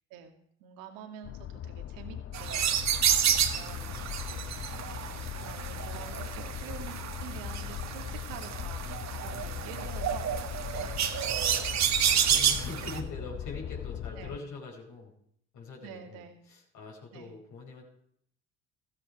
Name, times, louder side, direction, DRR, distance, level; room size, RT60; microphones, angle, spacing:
voice 1, 0.6-2.8 3.3-4.1 4.5-11.3 12.8-12.9 14.2-14.4 15.8-16.4 17.1-17.3, right 8 dB, 75° right, 6 dB, 2.2 m, -47 dB
sound 1, 1.2-14.4, left 10 dB, 40° left, 0.7 m, -39 dB
sound 2, 2.3-13.0, right 9 dB, 50° right, 1.8 m, -30 dB
voice 2, 11.5-15.1 15.5-16.2 16.5-17.9, left 3 dB, 60° left, -2 dB, 5.0 m, -43 dB
15.0 x 14.0 x 4.8 m, 0.68 s
hypercardioid pair, 60°, 34 cm